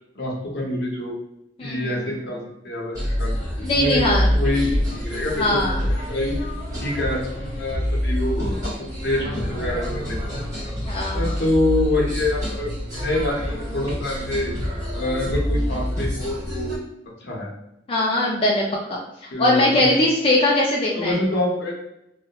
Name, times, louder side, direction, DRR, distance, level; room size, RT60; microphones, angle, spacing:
voice 1, 0.1-1.1 1.6-5.7 6.1-6.5 6.8-8.7 9.0-10.4 11.1-14.5 14.9-16.8 17.2-17.5 19.3-19.9 20.9-21.7, left 1 dB, 65° left, -2 dB, 0.7 m, -26 dB
sound 1, 2.9-16.8, equal, 20° right, 1.2 m, -26 dB
voice 2, 3.6-4.3 5.4-5.8 10.9-11.2 17.9-18.7 19.2-21.2, left 1 dB, 30° left, -3 dB, 0.3 m, -20 dB
2.8 x 2.0 x 2.2 m, 0.82 s
head